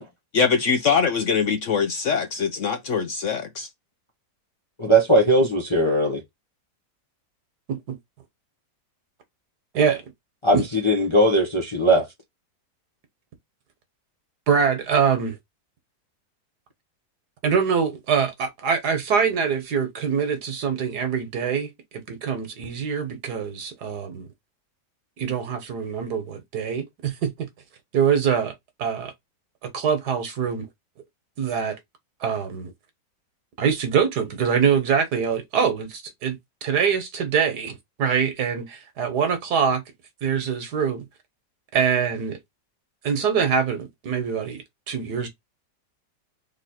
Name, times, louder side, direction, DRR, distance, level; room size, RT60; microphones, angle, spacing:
voice 1, 0.3-3.7, left 6 dB, 60° left, 0.8 m, -23 dB
voice 2, 4.8-6.2 10.4-12.1, right 1 dB, 25° left, 0.8 m, -19 dB
voice 3, 14.5-15.4 17.4-24.3 25.2-27.5 27.9-29.1 29.6-30.7 31.4-31.8 32.2-32.7 33.6-39.8 40.2-41.1 41.7-42.4 43.0-45.3, right 7 dB, 70° right, 1.7 m, -24 dB
3.9 x 3.1 x 4.3 m
omnidirectional pair, 1.8 m